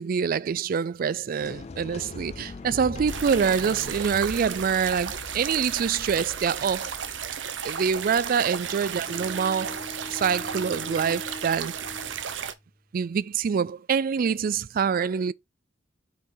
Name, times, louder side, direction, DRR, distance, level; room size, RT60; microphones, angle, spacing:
voice 1, 0.0-6.9 7.6-9.8 10.1-11.8 12.9-15.3, right 6 dB, 50° right, 0.3 m, -25 dB
sound 1, 1.4-9.4, left 3 dB, 35° left, 0.4 m, -42 dB
sound 2, 3.1-12.5, right 8 dB, 75° right, 0.8 m, -34 dB
Bowed string instrument, 8.6-12.8, left 2 dB, 15° left, 1.1 m, -42 dB
5.8 x 4.9 x 3.8 m
head